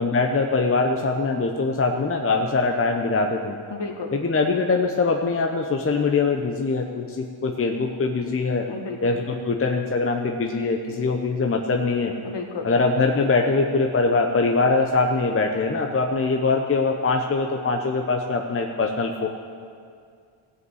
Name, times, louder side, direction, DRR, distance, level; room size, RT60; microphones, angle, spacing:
voice 1, 0.0-3.6 4.1-8.7 9.0-12.1 12.6-19.3, left 3 dB, 25° left, 3 dB, 0.8 m, -22 dB
voice 2, 3.7-4.1 8.7-9.0 12.2-12.7, left 4 dB, 55° left, 1 dB, 2.0 m, -32 dB
16.0 x 5.5 x 7.9 m, 2.2 s
cardioid pair, 85°, 50 cm